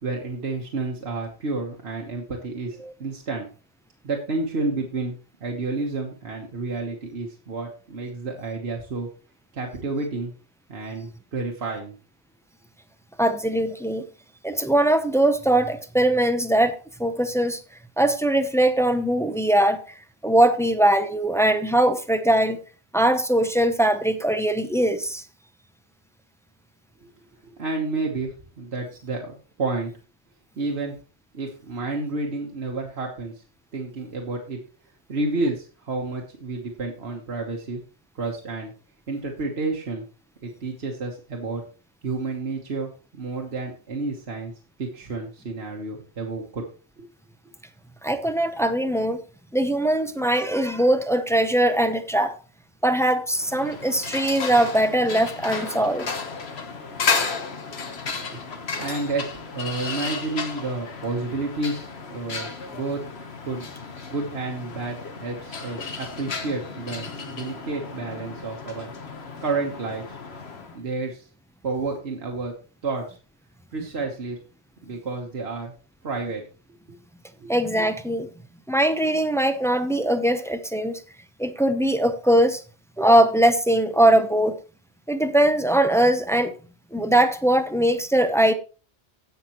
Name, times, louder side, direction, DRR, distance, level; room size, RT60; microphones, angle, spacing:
voice 1, 0.0-3.5 4.0-9.1 9.5-10.3 10.7-11.9 27.6-29.9 30.6-31.0 31.3-33.4 33.7-34.6 35.1-37.8 38.1-38.7 39.1-40.0 40.4-41.6 42.0-44.5 44.8-46.6 47.0-47.1 58.3-58.4 58.8-59.3 59.5-63.0 63.4-63.7 64.1-68.9 69.4-70.2 70.7-71.3 71.6-72.5 72.8-73.2 73.7-74.4 74.8-75.7 76.0-76.4 77.4-77.5, right 3 dB, 75° right, 1.6 m, -30 dB
voice 2, 13.2-14.1 14.4-17.6 18.0-19.8 20.2-22.6 22.9-25.2 48.0-49.2 49.5-52.4 52.8-56.1 77.5-78.3 78.7-81.0 81.4-82.6 83.0-84.6 85.1-86.5 86.9-88.5, right 1 dB, 5° left, 0.7 m, -21 dB
sound 1, 53.3-70.8, left 5 dB, 75° left, 1.5 m, -33 dB
17.5 x 6.0 x 3.1 m
omnidirectional pair, 1.1 m